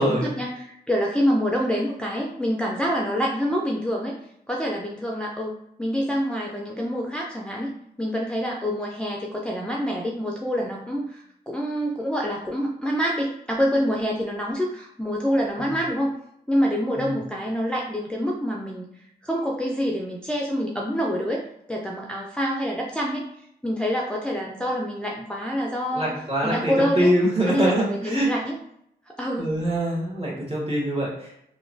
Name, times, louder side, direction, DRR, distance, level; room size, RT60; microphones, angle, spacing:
voice 1, 0.0-4.1 4.5-7.7 8.0-16.1 16.5-18.9 19.2-21.4 21.7-23.3 23.6-26.1 26.4-27.1 27.5-28.5 29.2-29.5, equal, 5° left, -2 dB, 0.4 m, -26 dB
voice 2, 25.9-28.3 29.4-31.4, right 1 dB, 35° right, -4 dB, 1.3 m, -24 dB
2.9 x 2.1 x 2.6 m, 0.74 s
cardioid pair, 60°, 18 cm